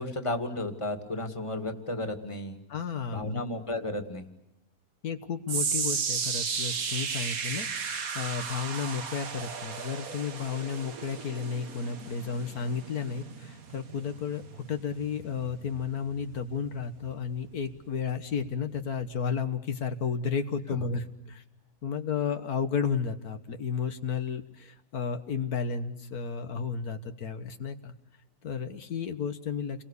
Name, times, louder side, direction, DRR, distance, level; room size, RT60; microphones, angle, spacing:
voice 1, 0.0-2.6 3.1-4.3 20.7-20.9, left 1 dB, 20° left, 7 dB, 2.1 m, -33 dB
voice 2, 2.7-3.4 5.0-21.4 21.8-27.9 28.4-29.8, left 6 dB, 80° left, 8 dB, 1.9 m, -33 dB
sound 1, 5.5-17.8 18.1-18.5 19.1-19.2, right 6 dB, 70° right, 1.9 m, -35 dB
29.5 x 22.0 x 8.3 m, 0.90 s
omnidirectional pair, 1.6 m